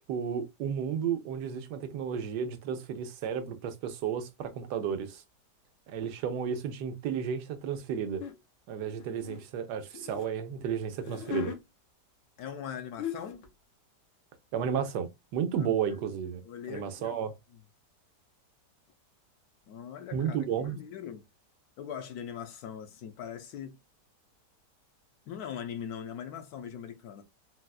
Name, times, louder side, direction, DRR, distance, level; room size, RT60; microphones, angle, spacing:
voice 1, 0.1-5.2 5.9-8.2 8.7-11.5 14.5-16.4 16.7-17.3 20.1-20.8, right 7 dB, 80° right, 1.2 m, -32 dB
sound 1, 8.2-8.4 9.0-10.3 10.9-11.6 12.6-12.7 13.0-13.5, left 9 dB, 90° left, 1.4 m, -38 dB
voice 2, 12.4-13.5 15.6-16.0 16.4-17.2 17.5-17.6 19.7-21.3 21.8-23.8 25.3-27.2, left 8 dB, 75° left, 1.0 m, -41 dB
4.0 x 2.3 x 2.2 m
omnidirectional pair, 1.8 m